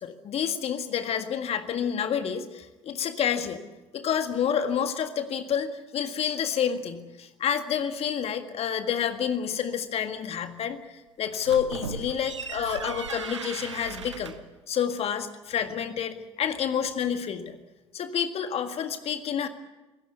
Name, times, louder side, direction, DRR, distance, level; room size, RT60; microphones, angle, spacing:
voice 1, 0.0-3.6 3.9-10.8 11.2-14.3 14.7-17.6 17.9-19.5, left 8 dB, 40° left, 9 dB, 1.8 m, -29 dB
sound 1, 11.3-14.5, right 6 dB, 80° right, 1.1 m, -37 dB
26.0 x 17.5 x 8.3 m, 1.1 s
figure-of-eight pair, 55°, 15 cm